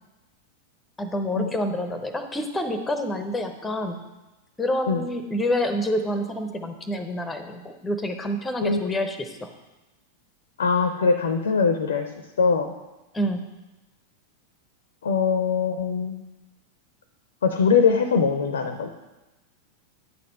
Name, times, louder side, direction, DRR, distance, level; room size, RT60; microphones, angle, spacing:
voice 1, 1.0-4.0 4.6-9.5 13.1-13.4, left 1 dB, 10° left, 7 dB, 0.8 m, -27 dB
voice 2, 8.6-9.0 10.6-12.1 12.4-12.7 15.0-16.2 17.4-18.9, left 5 dB, 65° left, 7 dB, 0.6 m, -22 dB
9.3 x 4.2 x 5.4 m, 1.1 s
figure-of-eight pair, 90°, 0 cm